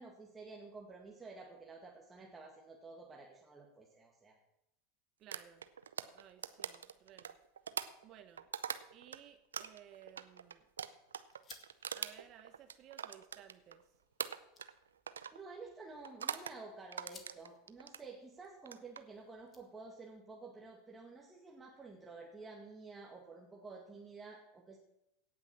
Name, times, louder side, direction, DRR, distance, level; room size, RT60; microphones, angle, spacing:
voice 1, 0.0-4.4 15.3-24.8, right 3 dB, 15° right, -2 dB, 2.0 m, -51 dB
voice 2, 5.2-5.7 6.1-7.4 8.0-8.5 8.9-10.7 11.9-13.9, right 10 dB, 45° right, 9 dB, 0.9 m, -58 dB
sound 1, 5.3-9.2 9.5-13.8 14.2-14.8 15.1-15.4 16.0-16.6 16.9-18.0 18.6-19.0, right 7 dB, 85° right, 0.5 m, -42 dB
sound 2, 9.8-20.2, left 5 dB, 30° left, 2.0 m, -64 dB
17.0 x 6.0 x 7.0 m, 0.87 s
hypercardioid pair, 90°, 0 cm